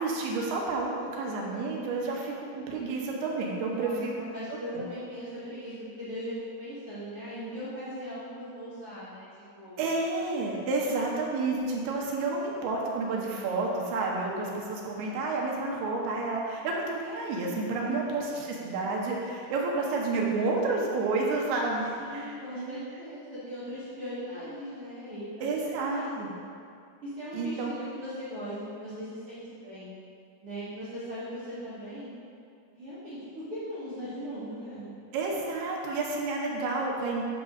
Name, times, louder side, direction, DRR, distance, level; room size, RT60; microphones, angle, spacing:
voice 1, 0.0-4.1 4.7-4.8 9.8-22.8 25.4-26.3 27.3-27.7 35.1-37.2, right 3 dB, 80° right, -2 dB, 2.7 m, -30 dB
voice 2, 3.6-9.8 17.8-18.6 22.0-26.5 27.0-29.9 30.4-32.1 32.7-34.9, equal, 50° right, -13 dB, 1.8 m, -39 dB
9.1 x 6.0 x 3.9 m, 2.3 s
omnidirectional pair, 4.8 m